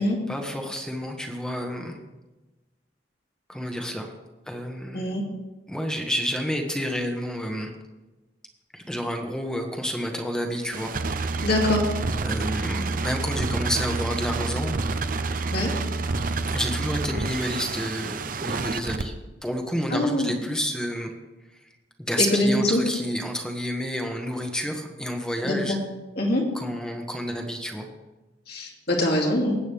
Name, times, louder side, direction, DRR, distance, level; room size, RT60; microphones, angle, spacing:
voice 1, 0.3-2.0 3.5-4.1 4.5-5.1 5.7-7.7 8.7-10.9 12.2-14.7 16.2-19.1 19.4-21.1 22.0-25.8 26.5-27.9, equal, 5° left, 3 dB, 1.2 m, -30 dB
sound 1, 10.7-19.0, right 3 dB, 50° right, 0.6 m, -28 dB
voice 2, 11.4-11.8 15.5-15.7 19.9-20.3 22.2-22.8 25.4-25.8 26.2-26.4 28.5-29.6, left 1 dB, 60° left, -2 dB, 2.8 m, -23 dB
19.5 x 8.5 x 3.5 m, 1.1 s
head